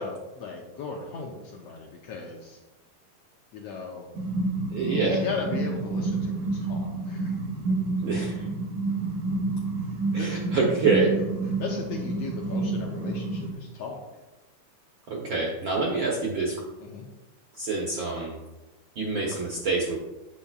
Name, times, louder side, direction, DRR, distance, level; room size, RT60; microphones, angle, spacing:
voice 1, 0.0-2.6 3.5-4.1 5.1-7.5 9.8-10.4 11.6-14.0 16.8-17.1, left 4 dB, 75° left, 0 dB, 1.5 m, -37 dB
sound 1, 4.1-13.5, right 3 dB, 85° right, 2.5 m, -29 dB
voice 2, 4.7-5.2 8.0-8.4 10.1-11.1 15.1-16.5 17.6-18.4 19.0-20.0, right 3 dB, 65° right, -3 dB, 1.2 m, -26 dB
8.5 x 6.8 x 2.3 m, 1.1 s
omnidirectional pair, 3.4 m